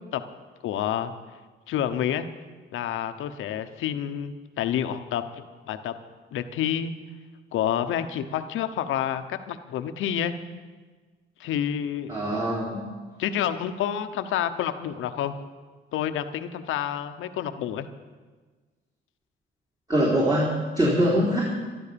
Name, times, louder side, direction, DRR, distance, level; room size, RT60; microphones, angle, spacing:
voice 1, 0.6-1.1 1.7-2.3 2.7-5.9 6.3-6.9 7.5-10.3 11.4-12.1 13.2-15.3 15.9-17.9, left 10 dB, 85° left, 9 dB, 1.0 m, -28 dB
voice 2, 12.1-12.8 19.9-21.4, equal, 20° right, -5 dB, 3.6 m, -23 dB
12.5 x 12.5 x 6.9 m, 1.4 s
cardioid pair, 90°, 20 cm